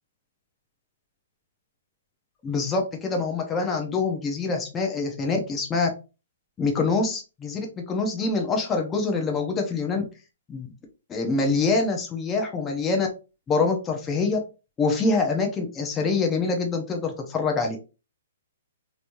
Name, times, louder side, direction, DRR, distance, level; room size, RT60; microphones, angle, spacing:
voice 1, 2.4-5.9 6.6-10.1 10.5-10.7 11.1-13.1 13.5-14.4 14.8-17.8, left 3 dB, 15° left, 2 dB, 0.7 m, -25 dB
3.2 x 3.0 x 2.6 m, 0.31 s
hypercardioid pair, 145°, 0 cm